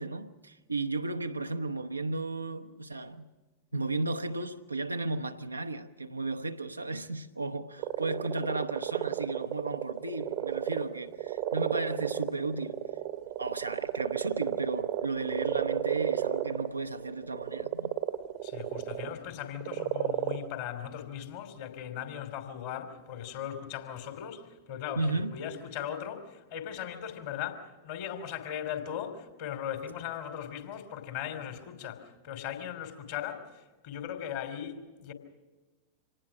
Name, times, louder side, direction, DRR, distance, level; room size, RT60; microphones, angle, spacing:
voice 1, 0.0-3.3 3.7-12.8 13.4-17.9 25.0-25.3, right 2 dB, 80° right, 0.9 m, -34 dB
Frogs In A Pond Close, 7.8-19.1 19.5-20.5, right 13 dB, 45° right, 1.1 m, -32 dB
voice 2, 18.4-33.4 33.8-35.1, left 9 dB, 50° left, 3.1 m, -38 dB
26.0 x 19.0 x 6.1 m
figure-of-eight pair, 90°, 0 cm